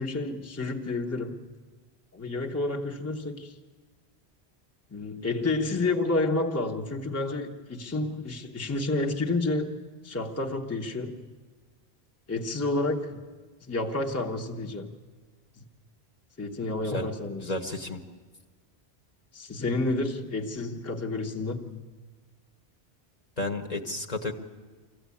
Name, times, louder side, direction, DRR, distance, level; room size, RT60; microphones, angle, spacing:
voice 1, 0.0-1.4 2.1-3.5 4.9-9.7 10.0-11.3 12.3-13.2 13.7-14.9 15.6-15.7 16.4-17.5 19.3-21.8, left 2 dB, 15° left, 1 dB, 1.0 m, -30 dB
voice 2, 17.4-18.0 23.4-24.3, left 2 dB, 40° left, 4 dB, 1.2 m, -32 dB
24.5 x 15.0 x 8.4 m, 1.4 s
omnidirectional pair, 1.1 m